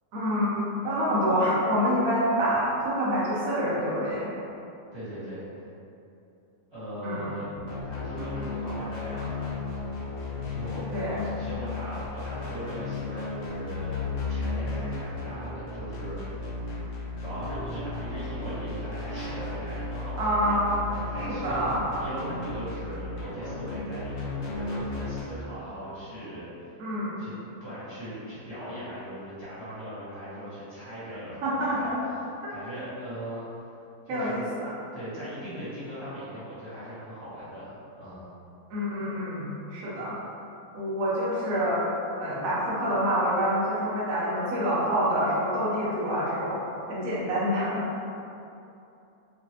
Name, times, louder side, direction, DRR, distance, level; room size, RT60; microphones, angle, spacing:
voice 1, 0.1-4.3 7.0-7.3 10.9-11.2 20.2-20.7 21.1-21.8 26.8-27.2 31.4-32.0 34.1-34.7 38.7-40.2 40.7-46.6 46.9-47.8, equal, 60° right, -8 dB, 1.2 m, -27 dB
voice 2, 4.9-5.7 6.7-7.5 7.8-10.0 10.4-16.4 17.2-20.6 21.0-21.6 22.0-26.7 27.2-27.3 27.6-33.7 34.0-34.4 34.9-38.3, equal, 20° right, -14 dB, 1.3 m, -39 dB
sound 1, 7.5-25.2, left 3 dB, 65° left, 0.9 m, -34 dB
3.2 x 2.6 x 2.9 m, 2.8 s
omnidirectional pair, 1.7 m